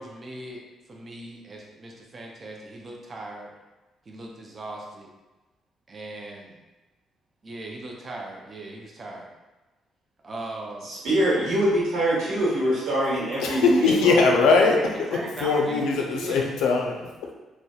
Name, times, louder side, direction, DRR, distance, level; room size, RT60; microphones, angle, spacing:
voice 1, 0.0-3.5 4.1-5.1 5.9-6.6 7.4-9.3 10.2-10.9 14.7-16.5, right 2 dB, 40° right, -1 dB, 0.4 m, -38 dB
voice 2, 10.8-14.2, right 1 dB, 85° right, -6 dB, 1.0 m, -24 dB
voice 3, 13.4-14.8 15.4-17.3, left 4 dB, 85° left, 1 dB, 0.4 m, -21 dB
2.7 x 2.1 x 2.3 m, 1.1 s
cardioid pair, 90°, 0 cm